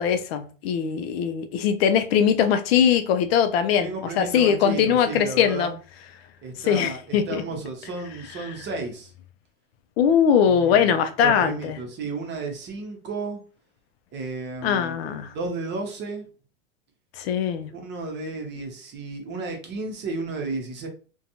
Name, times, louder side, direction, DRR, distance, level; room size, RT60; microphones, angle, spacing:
voice 1, 0.0-5.7 6.7-7.4 8.4-8.5 10.0-11.8 14.6-15.3 17.2-17.7, left 8 dB, 55° left, 0.5 m, -21 dB
voice 2, 3.8-5.8 6.4-9.1 10.4-13.4 14.1-15.0 15.3-16.3 17.7-20.9, right 3 dB, 30° right, 0.8 m, -33 dB
2.4 x 2.2 x 2.8 m
hypercardioid pair, 110°, 37 cm